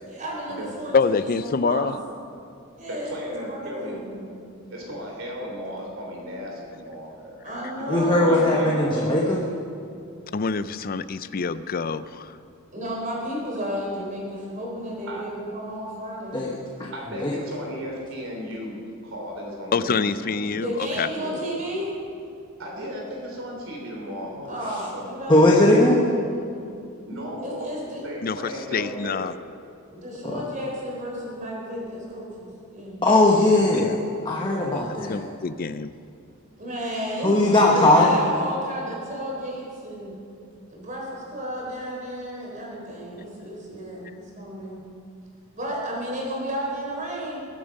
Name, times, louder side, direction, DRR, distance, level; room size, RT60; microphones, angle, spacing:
voice 1, 0.1-1.2 1.5-1.9 2.8-4.2 7.4-8.9 12.7-16.4 20.6-21.9 24.5-26.7 27.4-28.0 29.9-33.0 36.6-40.1 40.7-44.8 45.5-47.4, equal, 35° right, -3 dB, 3.9 m, -32 dB
voice 2, 0.9-2.0 10.3-12.4 19.7-21.1 28.2-29.3 33.7-34.0 34.7-35.9, left 4 dB, 40° left, 14 dB, 0.4 m, -26 dB
voice 3, 2.9-4.0 4.7-7.4 7.8-9.1 15.1-15.2 16.9-20.6 21.1-21.4 22.6-25.4 27.1-27.7 28.0-29.2, equal, 65° right, -1 dB, 3.5 m, -35 dB
voice 4, 7.9-9.4 16.3-16.5 17.2-17.3 25.3-26.0 30.2-30.4 33.0-35.2 37.2-38.1, left 2 dB, 20° left, -3 dB, 1.1 m, -19 dB
21.5 x 8.8 x 5.3 m, 2.5 s
head